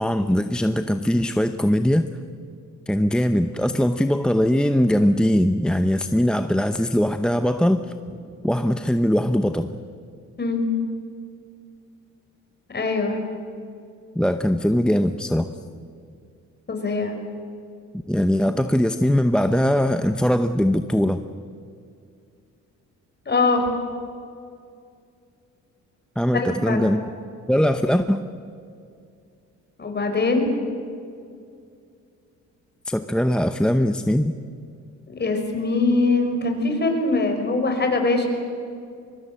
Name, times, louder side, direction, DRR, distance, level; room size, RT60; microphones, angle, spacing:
voice 1, 0.0-2.1 2.9-7.9 8.4-9.7 14.1-15.5 18.1-21.2 26.2-27.0 27.5-28.2 32.9-34.4, equal, 5° left, 8 dB, 0.9 m, -21 dB
voice 2, 12.7-13.2 16.7-17.1 23.3-23.7 26.3-26.9 29.8-30.4 35.1-38.3, left 3 dB, 35° left, 4 dB, 5.4 m, -22 dB
24.0 x 22.5 x 7.8 m, 2.4 s
cardioid pair, 90°, 30 cm